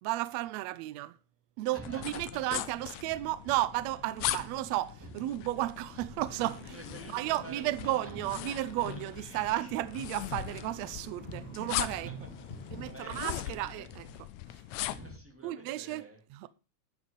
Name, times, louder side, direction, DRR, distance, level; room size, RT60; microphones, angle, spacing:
voice 1, 0.0-1.2 1.6-6.8 7.1-12.2 12.7-14.0 15.4-16.5, right 16 dB, 80° right, 1.6 m, -33 dB
voice 2, 1.7-2.4 2.7-3.2 4.2-4.4 5.0-5.1 5.6-5.7 6.4-8.3 8.9-9.0 11.2-11.5 11.8-13.9 14.9-16.2, right 1 dB, 5° right, 1.8 m, -49 dB
sound 1, 1.8-15.2, left 15 dB, 75° left, 1.8 m, -40 dB
sound 2, 6.2-13.3, left 2 dB, 45° left, 0.5 m, -48 dB
11.5 x 6.4 x 5.2 m
omnidirectional pair, 3.7 m